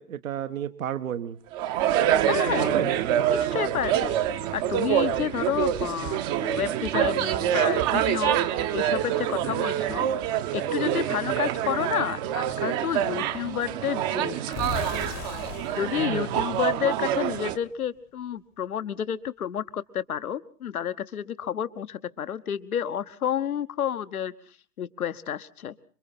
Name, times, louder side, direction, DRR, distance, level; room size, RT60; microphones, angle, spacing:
voice 1, 0.0-1.4 2.6-2.9 11.2-11.7 16.0-16.4, right 9 dB, 60° right, 10 dB, 1.2 m, -33 dB
sound 1, 1.5-17.6, right 11 dB, 25° right, 1.0 m, -26 dB
voice 2, 2.3-2.9 3.3-4.2 4.5-10.1 10.5-14.4 15.8-24.3 24.8-25.7, left 9 dB, 65° left, 13 dB, 1.2 m, -30 dB
sound 2, 14.5-17.4, left 12 dB, 25° left, 1.1 m, -38 dB
27.0 x 23.5 x 4.2 m, 0.42 s
figure-of-eight pair, 115°, 46 cm